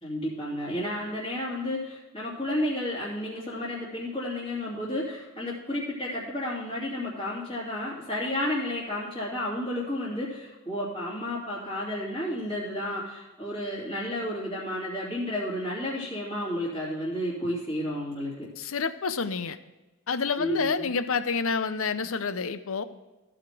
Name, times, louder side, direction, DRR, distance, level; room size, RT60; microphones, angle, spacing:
voice 1, 0.0-18.5 20.4-20.9, left 1 dB, 25° left, -9 dB, 3.0 m, -32 dB
voice 2, 18.6-19.6 20.1-22.8, left 5 dB, 65° left, 12 dB, 0.7 m, -28 dB
15.0 x 5.1 x 6.0 m, 1.1 s
head